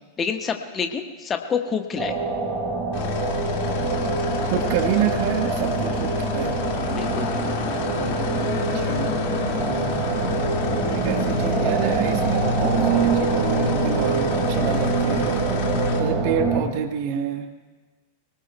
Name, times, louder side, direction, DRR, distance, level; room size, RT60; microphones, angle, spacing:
voice 1, 0.2-2.2 6.9-7.3, left 6 dB, 20° left, 5 dB, 1.4 m, -27 dB
sound 1, 2.0-16.6, right 3 dB, 25° right, 4.6 m, -24 dB
sound 2, 2.9-16.0, left 6 dB, 45° left, 2.2 m, -30 dB
voice 2, 4.4-6.6 8.7-9.1 10.9-15.5 16.0-17.5, right 8 dB, 45° right, 7 dB, 1.3 m, -27 dB
26.5 x 18.5 x 2.3 m, 1.2 s
figure-of-eight pair, 90°, 0 cm